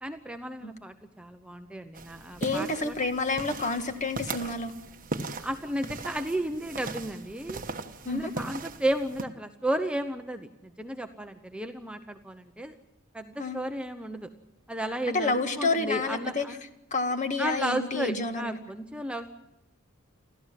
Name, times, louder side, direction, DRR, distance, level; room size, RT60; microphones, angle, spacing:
voice 1, 0.0-3.0 5.4-7.6 8.1-12.8 13.1-14.3 14.7-16.6 17.4-19.3, right 1 dB, 5° right, 6 dB, 0.8 m, -33 dB
sound 1, 1.9-9.2, right 3 dB, 40° right, 1.3 m, -39 dB
voice 2, 2.4-4.7 8.1-8.3 13.4-13.6 15.1-16.4 16.9-18.6, left 3 dB, 35° left, 7 dB, 1.8 m, -29 dB
29.0 x 13.5 x 7.6 m, 0.92 s
head